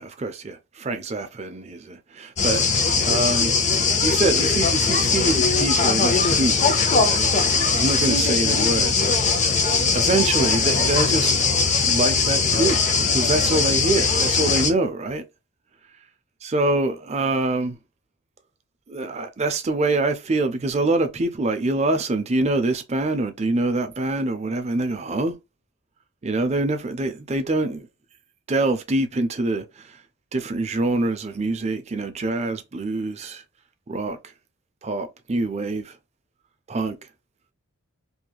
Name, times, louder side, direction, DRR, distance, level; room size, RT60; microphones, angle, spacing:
voice 1, 0.0-3.6 4.0-6.6 6.9-7.3 7.7-9.2 9.9-11.3 11.8-15.3 16.4-17.8 18.9-25.3 26.2-27.8 28.5-30.0 30.3-33.4 33.9-34.2 34.8-35.9 36.7-37.0, right 2 dB, 30° right, 0.5 m, -25 dB
sound 1, 2.4-14.7, left 4 dB, 30° left, 0.5 m, -20 dB
3.1 x 2.7 x 2.2 m
head